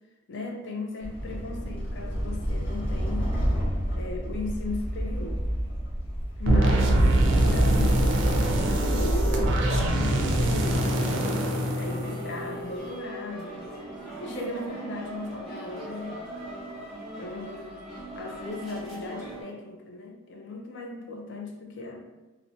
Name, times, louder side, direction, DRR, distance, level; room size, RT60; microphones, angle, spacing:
voice 1, 0.3-3.4 3.9-5.4 6.4-8.0 8.4-13.5 14.2-16.2 17.2-17.8 18.1-22.1, left 2 dB, 60° left, 0 dB, 0.4 m, -37 dB
sound 1, 1.0-10.8, equal, 30° left, 0.8 m, -27 dB
sound 2, 6.5-12.6, right 1 dB, 60° right, 0.4 m, -25 dB
sound 3, 9.9-19.4, right 1 dB, ahead, 0.8 m, -40 dB
2.6 x 2.1 x 2.5 m, 1.1 s
head